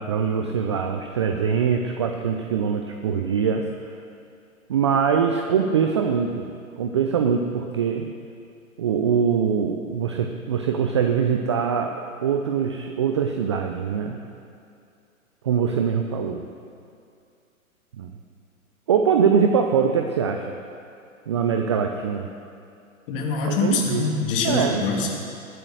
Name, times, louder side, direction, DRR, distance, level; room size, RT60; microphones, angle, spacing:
voice 1, 0.0-3.7 4.7-6.5 6.8-8.1 8.8-11.9 12.2-14.2 15.4-16.5 18.0-18.1 18.9-20.6 21.3-22.3 23.4-24.2 24.4-24.9, right 6 dB, 20° right, 4 dB, 0.4 m, -23 dB
voice 2, 23.1-25.1, left 4 dB, 40° left, 0 dB, 2.5 m, -24 dB
19.0 x 7.8 x 6.3 m, 2.5 s
figure-of-eight pair, 115°, 42 cm